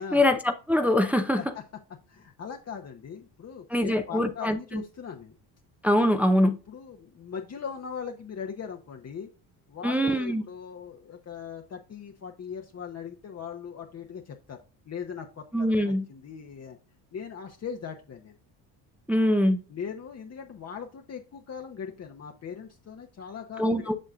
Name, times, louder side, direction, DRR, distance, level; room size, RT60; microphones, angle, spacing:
voice 1, 0.0-1.4 3.7-4.8 5.8-6.6 9.8-10.4 15.5-16.0 19.1-19.6 23.6-24.0, left 1 dB, 5° right, 0.6 m, -23 dB
voice 2, 2.1-5.3 6.7-9.3 9.7-14.6 14.9-16.8 17.1-18.3 19.7-23.7, left 7 dB, 35° left, 0.9 m, -39 dB
7.6 x 6.3 x 2.4 m
supercardioid pair, 85°, 43 cm